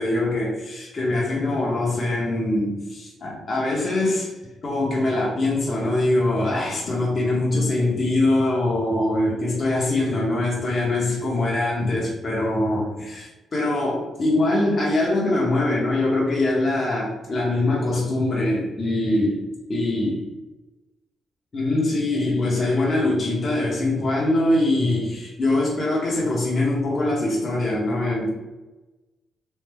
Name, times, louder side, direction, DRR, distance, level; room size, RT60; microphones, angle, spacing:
voice 1, 0.0-4.3 4.6-19.4 19.7-20.3 21.5-28.3, left 2 dB, 35° left, -5 dB, 0.8 m, -23 dB
3.2 x 2.1 x 3.4 m, 1.1 s
cardioid pair, 140°, 0 cm